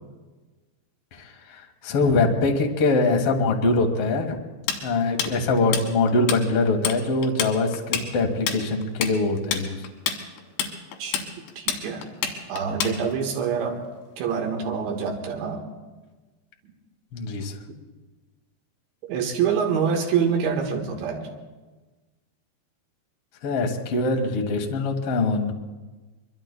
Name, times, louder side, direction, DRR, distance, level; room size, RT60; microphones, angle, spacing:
voice 1, 1.1-4.4 4.8-9.8 17.1-17.5 23.4-25.5, left 3 dB, 75° left, 2 dB, 1.3 m, -23 dB
Tools, 4.7-6.4 6.7-7.0 7.2-13.3, left 7 dB, 90° left, 3.8 m, -28 dB
voice 2, 11.6-12.1 12.5-13.8 14.2-15.6 19.1-21.3, right 6 dB, 80° right, 1 dB, 3.7 m, -26 dB
24.5 x 23.5 x 2.2 m, 1.2 s
omnidirectional pair, 5.1 m